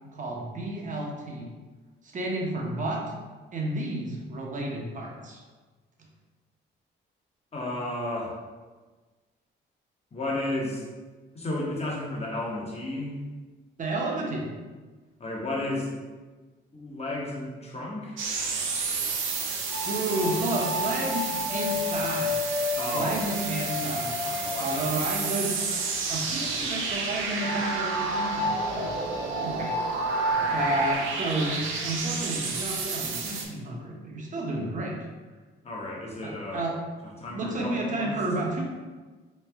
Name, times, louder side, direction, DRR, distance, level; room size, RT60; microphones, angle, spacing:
voice 1, 0.1-1.5 2.1-3.0 3.5-5.4 13.8-14.5 19.9-22.6 22.9-25.6 26.1-29.0 29.4-29.7 30.2-35.0 36.2-36.8 37.3-38.6, right 2 dB, 40° right, -1 dB, 0.8 m, -31 dB
voice 2, 7.5-8.4 10.1-10.8 11.3-13.2 15.2-15.9 16.7-18.2 22.8-23.2 23.9-25.0 30.4-30.8 35.6-36.7 37.2-38.2, left 1 dB, 30° left, -3 dB, 1.0 m, -33 dB
sound 1, 18.2-33.4, right 4 dB, 85° right, 0.5 m, -31 dB
sound 2, 19.7-25.5 27.4-30.9, left 2 dB, 45° left, 0.5 m, -31 dB
3.1 x 2.3 x 3.5 m, 1.3 s
cardioid pair, 90°, 20 cm